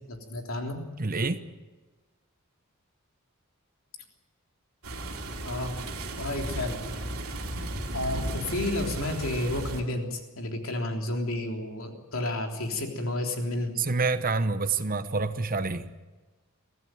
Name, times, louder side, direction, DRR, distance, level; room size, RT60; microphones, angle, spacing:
voice 1, 0.1-0.8 5.4-5.8 6.2-6.8 7.9-13.7, left 1 dB, 70° left, 2 dB, 3.5 m, -31 dB
voice 2, 1.0-1.4 13.8-15.9, right 4 dB, 40° right, 11 dB, 1.0 m, -27 dB
sound 1, 4.8-9.8, right 1 dB, 85° right, 3.1 m, -35 dB
23.0 x 15.5 x 9.3 m, 1.2 s
head